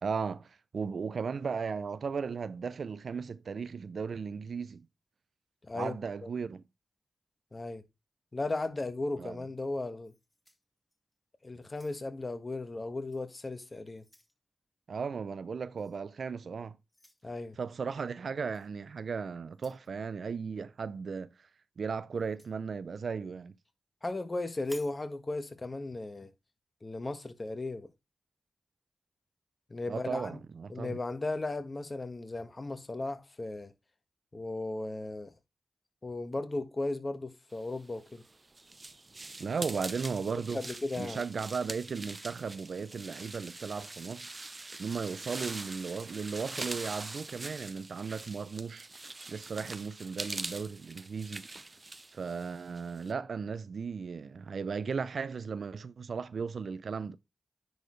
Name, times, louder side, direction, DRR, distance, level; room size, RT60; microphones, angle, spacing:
voice 1, 0.0-4.9 5.7-6.6 9.2-9.4 14.9-16.8 17.6-21.3 21.8-23.5 29.9-31.0 39.4-40.6 41.0-44.3 44.8-48.9 49.3-51.5 52.1-57.2, right 5 dB, 75° right, 0.5 m, -36 dB
voice 2, 5.6-6.3 7.5-7.8 8.3-10.1 11.4-14.0 17.2-17.6 24.0-26.3 26.8-27.9 29.7-30.4 30.7-33.7 34.3-35.3 36.0-38.2 40.5-41.2, left 2 dB, 40° left, 1.6 m, -36 dB
sound 1, 10.0-11.2 11.6-12.3 13.1-13.3 13.7-14.4 15.8-16.0 16.9-17.2 18.5-18.7 19.5-19.9 22.1-22.6 24.6-25.0, left 1 dB, 10° left, 2.2 m, -56 dB
sound 2, 37.9-53.1, right 2 dB, 40° right, 0.8 m, -43 dB
10.0 x 4.3 x 3.2 m
cardioid pair, 45°, 0 cm